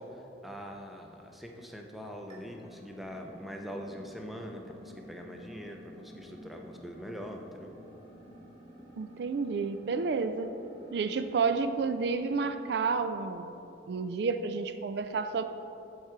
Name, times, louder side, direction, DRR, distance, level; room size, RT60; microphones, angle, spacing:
voice 1, 0.0-7.7, equal, ahead, 2 dB, 0.6 m, -43 dB
sound 1, 2.3-13.2, equal, 25° right, 1.9 m, -51 dB
voice 2, 9.0-10.5 10.9-13.6 13.9-15.4, right 4 dB, 60° right, 9 dB, 0.3 m, -30 dB
14.0 x 4.7 x 4.5 m, 2.9 s
head